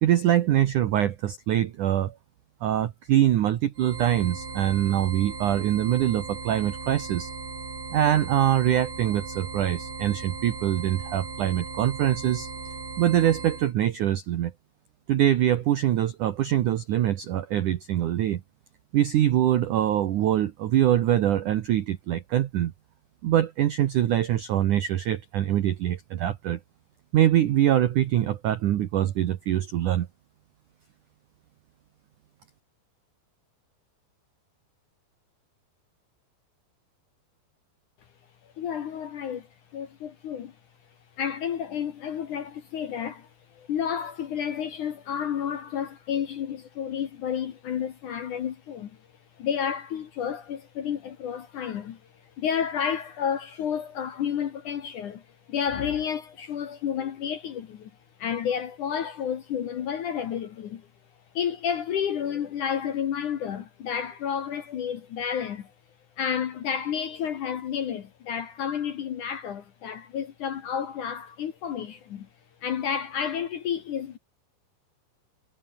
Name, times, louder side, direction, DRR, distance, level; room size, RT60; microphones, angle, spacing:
voice 1, 0.0-2.1 2.6-7.3 7.9-12.5 13.0-14.5 15.1-18.4 18.9-22.7 23.2-26.6 27.1-30.1, right 12 dB, 75° right, 1.9 m, -24 dB
sound 1, 3.7-13.7, right 4 dB, 55° right, 9.4 m, -37 dB
voice 2, 38.4-39.5 39.7-40.5 41.2-48.9 49.4-52.0 52.4-55.2 55.5-57.9 58.2-60.9 61.3-65.7 66.2-72.3 72.6-74.2, left 8 dB, 60° left, 2.3 m, -31 dB
omnidirectional pair, 5.2 m